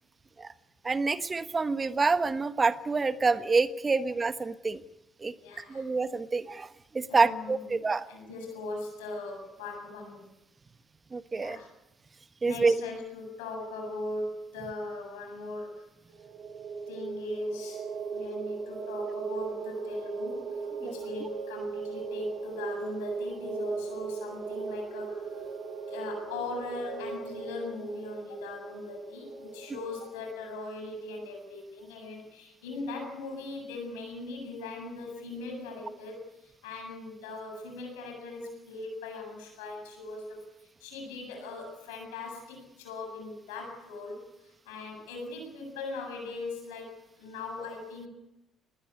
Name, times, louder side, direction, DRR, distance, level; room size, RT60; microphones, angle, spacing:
voice 1, 0.8-4.8 5.2-6.7 6.9-8.0 11.1-11.6 12.4-12.7 20.8-20.9, right 4 dB, 30° right, 13 dB, 1.2 m, -27 dB
voice 2, 5.4-5.8 7.1-10.3 11.4-11.7 12.4-15.8 16.9-25.5 25.9-40.4 40.8-48.1, left 2 dB, 80° left, 3 dB, 7.8 m, -39 dB
sound 1, 16.1-30.4, right 4 dB, 70° right, 7.0 m, -38 dB
20.5 x 19.0 x 8.5 m, 0.94 s
hypercardioid pair, 50°, 0 cm